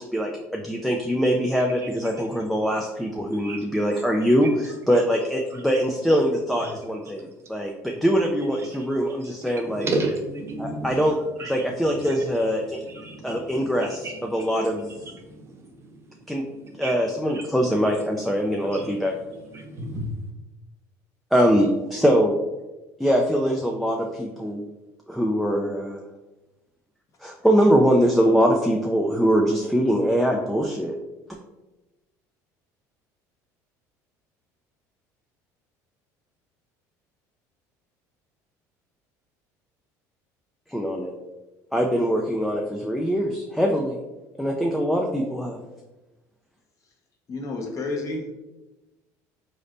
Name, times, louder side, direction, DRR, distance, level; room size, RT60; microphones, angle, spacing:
voice 1, 0.0-9.9 10.6-11.2 11.5-12.8 13.2-14.9 16.3-16.4 16.8-19.1 21.3-22.3 23.0-24.7 25.1-26.0 27.2-31.0 40.7-41.1 41.7-44.0 44.4-45.6, equal, ahead, 0 dB, 0.3 m, -23 dB
voice 2, 3.3-3.6 4.2-4.3 5.5-5.6 6.6-6.7 8.7-8.9 9.2-9.3 9.6-11.1 11.4-11.6 12.0-12.4 12.7-16.0 16.6-16.9 17.3-17.4 18.6-18.9 19.3-20.2, right 2 dB, 35° right, 1 dB, 0.7 m, -33 dB
voice 3, 47.3-48.3, left 2 dB, 40° left, 1 dB, 0.8 m, -30 dB
4.0 x 3.3 x 2.5 m, 1.1 s
supercardioid pair, 100°, 8 cm